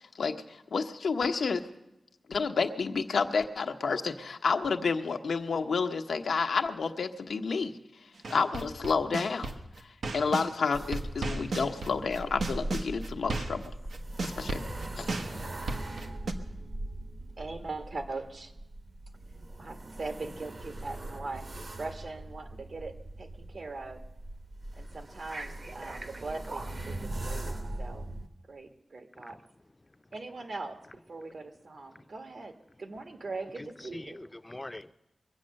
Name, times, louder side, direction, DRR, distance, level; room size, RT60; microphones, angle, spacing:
voice 1, 0.1-1.6 2.3-7.7 8.3-9.6 10.1-13.6 14.2-14.6 15.0-15.1, left 5 dB, 90° left, 5 dB, 0.8 m, -30 dB
sound 1, 8.2-10.5 10.9-16.3, right 3 dB, 90° right, 1.1 m, -34 dB
sound 2, 10.7-28.3, right 1 dB, 45° right, 1.0 m, -40 dB
voice 2, 17.2-18.5 19.6-24.1 24.8-28.1 28.5-29.4 30.1-34.2, right 3 dB, 65° right, 5 dB, 1.4 m, -41 dB
voice 3, 29.8-30.1 31.9-32.1 33.6-34.9, left 1 dB, 20° left, 11 dB, 0.5 m, -45 dB
22.5 x 7.8 x 6.4 m, 0.92 s
wide cardioid pair, 95°, 0 cm